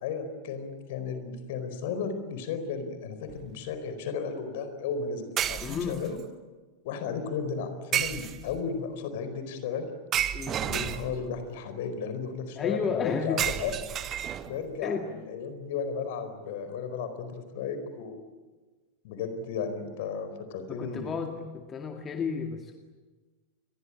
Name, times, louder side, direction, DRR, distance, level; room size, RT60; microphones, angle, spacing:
voice 1, 0.0-6.2 6.8-9.9 10.6-13.7 14.4-18.2 19.0-21.2, left 6 dB, 50° left, 10 dB, 4.6 m, -34 dB
sound 1, 3.3-3.5 5.4-6.2 7.9-8.7 10.1-11.4 13.4-14.7, right 10 dB, 30° right, 1.4 m, -31 dB
voice 2, 5.6-6.0 10.3-10.6 12.6-13.4 14.8-15.0 20.8-22.7, left 5 dB, 25° left, 4 dB, 2.3 m, -32 dB
29.5 x 22.5 x 8.8 m, 1.3 s
figure-of-eight pair, 90°, 0 cm